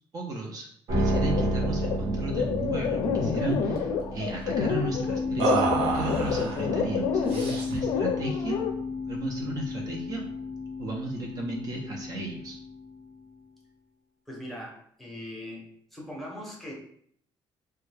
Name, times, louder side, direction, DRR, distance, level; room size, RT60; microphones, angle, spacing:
voice 1, 0.1-8.6 9.1-10.2 10.8-12.6, right 2 dB, 40° right, 0 dB, 0.5 m, -35 dB
sound 1, 0.9-13.2, left 1 dB, 55° right, 1.0 m, -32 dB
sound 2, 1.1-8.7, left 6 dB, 65° left, 0.4 m, -29 dB
sound 3, 2.1-2.3 2.5-2.7 3.1-3.8 5.4-6.6 7.3-7.9, right 4 dB, 90° right, 0.7 m, -29 dB
voice 2, 14.3-15.7 15.9-16.7, left 1 dB, ahead, -3 dB, 0.7 m, -40 dB
3.3 x 2.2 x 3.2 m, 0.65 s
cardioid pair, 160°, 9 cm